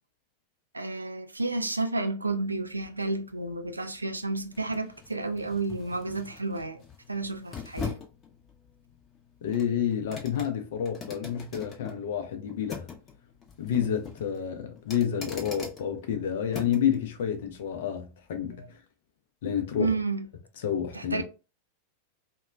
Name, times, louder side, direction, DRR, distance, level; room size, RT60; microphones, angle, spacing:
voice 1, 0.7-6.8 7.1-8.0 18.6-18.7 19.8-20.3 20.9-21.2, right 3 dB, 80° right, 0.3 m, -31 dB
sound 1, 2.3-17.0 17.4-17.6, left 6 dB, 25° left, 0.7 m, -43 dB
voice 2, 9.4-12.9 13.6-18.7 19.4-19.9 20.6-21.2, left 9 dB, 55° left, 0.5 m, -29 dB
2.9 x 2.2 x 2.3 m
figure-of-eight pair, 90°, 0 cm